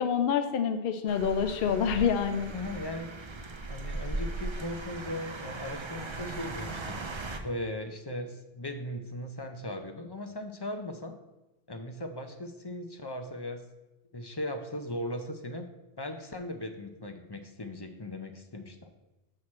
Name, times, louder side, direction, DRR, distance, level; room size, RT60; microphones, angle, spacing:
voice 1, 0.0-2.5, left 7 dB, 65° left, 8 dB, 0.7 m, -27 dB
sound 1, 1.1-7.4, right 2 dB, 35° right, 0.5 m, -38 dB
voice 2, 2.5-3.2 3.7-7.0 7.4-11.1 11.7-13.6 14.1-15.7 16.0-18.9, left 1 dB, 30° left, 5 dB, 0.5 m, -38 dB
6.6 x 6.1 x 4.2 m, 1.0 s
omnidirectional pair, 1.1 m